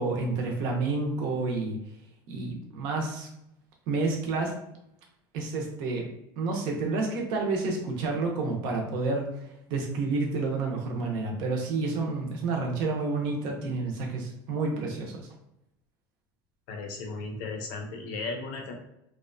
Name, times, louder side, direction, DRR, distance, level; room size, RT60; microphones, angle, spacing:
voice 1, 0.0-1.8 2.3-3.3 3.9-4.5 5.3-6.0 6.4-15.3, right 3 dB, 40° right, 0 dB, 0.5 m, -29 dB
voice 2, 16.7-18.7, left 3 dB, 55° left, 3 dB, 0.5 m, -35 dB
2.6 x 2.1 x 2.5 m, 0.83 s
cardioid pair, 180°, 11 cm